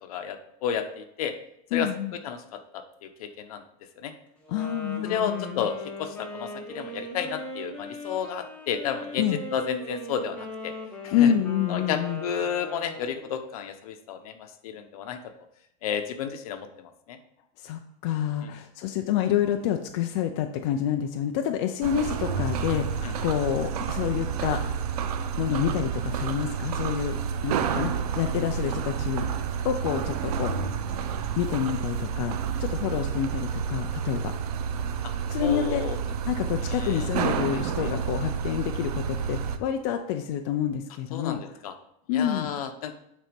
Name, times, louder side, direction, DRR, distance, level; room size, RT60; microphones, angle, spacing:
voice 1, 0.0-1.3 1.7-1.9 2.2-2.8 3.2-3.6 4.0-4.1 5.0-10.7 11.0-11.3 11.7-15.2 15.8-17.2 18.4-18.5 22.7-23.1 35.4-36.0 36.7-37.1 37.5-37.9 41.1-41.7 42.1-42.9, left 7 dB, 70° left, 7 dB, 1.0 m, -32 dB
voice 2, 1.7-2.1 4.5-5.7 9.2-9.4 11.1-12.2 17.6-24.8 25.3-29.3 29.6-30.5 31.4-34.3 35.3-35.8 36.3-41.4 42.1-42.6, left 10 dB, 40° left, 5 dB, 0.5 m, -28 dB
Wind instrument woodwind instrument, 4.4-13.4, equal, 5° left, 1.1 m, -39 dB
sound 1, 21.8-39.6, right 7 dB, 85° right, 0.8 m, -30 dB
9.1 x 4.3 x 5.2 m, 0.74 s
supercardioid pair, 175°, 19 cm